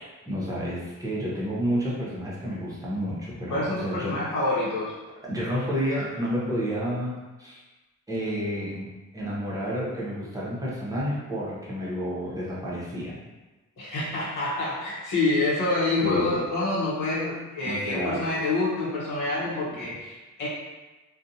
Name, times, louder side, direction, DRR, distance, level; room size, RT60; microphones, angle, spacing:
voice 1, 0.3-4.2 5.3-7.6 8.1-13.2 16.0-16.5 17.6-18.2 19.8-19.9, equal, 10° right, -7 dB, 0.8 m, -30 dB
voice 2, 3.5-4.9 13.8-20.5, left 2 dB, 75° left, -8 dB, 0.8 m, -27 dB
2.5 x 2.2 x 2.7 m, 1.2 s
cardioid pair, 90°, 32 cm